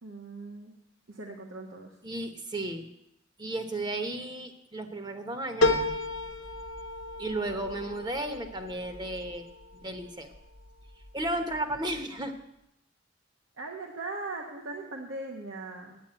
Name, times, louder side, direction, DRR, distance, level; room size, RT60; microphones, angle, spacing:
voice 1, 0.0-0.7 1.1-1.9 13.6-16.0, right 2 dB, 90° right, 1 dB, 1.2 m, -39 dB
voice 2, 2.0-2.9 3.4-5.7 7.2-9.5 9.7-10.3 11.1-12.3, right 1 dB, 25° right, 6 dB, 1.0 m, -34 dB
sound 1, 5.6-10.4 10.9-11.6 11.9-12.0, left 2 dB, 85° left, 0.9 m, -32 dB
9.2 x 8.3 x 8.9 m, 0.83 s
head